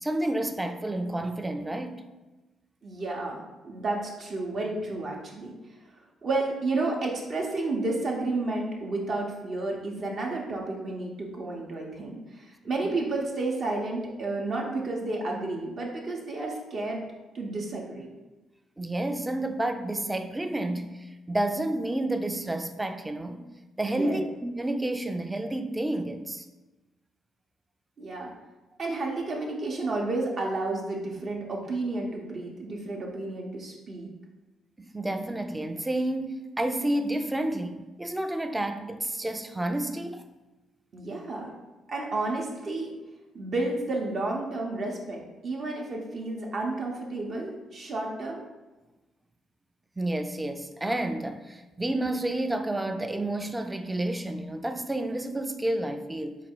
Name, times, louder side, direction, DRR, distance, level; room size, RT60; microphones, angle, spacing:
voice 1, 0.0-2.1 12.8-12.9 18.8-23.4 23.8-26.5 34.8-40.2 50.0-56.4, right 1 dB, 15° right, 0.3 m, -30 dB
voice 2, 2.8-5.5 6.2-17.0 17.3-18.1 23.8-24.2 28.0-28.3 28.8-34.1 40.9-41.5 41.9-42.9 43.3-48.4, right 2 dB, 50° right, 0.7 m, -31 dB
4.0 x 2.3 x 4.4 m
cardioid pair, 90°, 0 cm